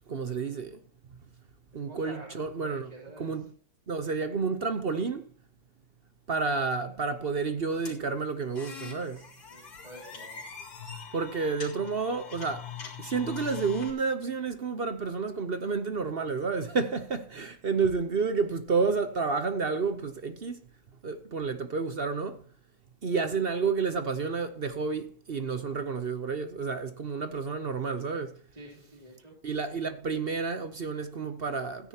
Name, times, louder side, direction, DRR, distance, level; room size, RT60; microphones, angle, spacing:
voice 1, 0.1-0.8 1.7-2.9 3.2-3.4 3.9-5.2 6.3-9.2 11.1-12.7 13.0-20.6 21.0-22.4 23.0-28.4 29.4-31.9, right 4 dB, 50° right, 0.7 m, -30 dB
voice 2, 1.9-2.3 2.6-3.4 9.5-10.4 28.5-29.3, right 1 dB, 20° right, 2.9 m, -48 dB
sound 1, 7.9-13.9, left 7 dB, 85° left, 3.5 m, -42 dB
16.5 x 9.9 x 2.9 m
omnidirectional pair, 2.0 m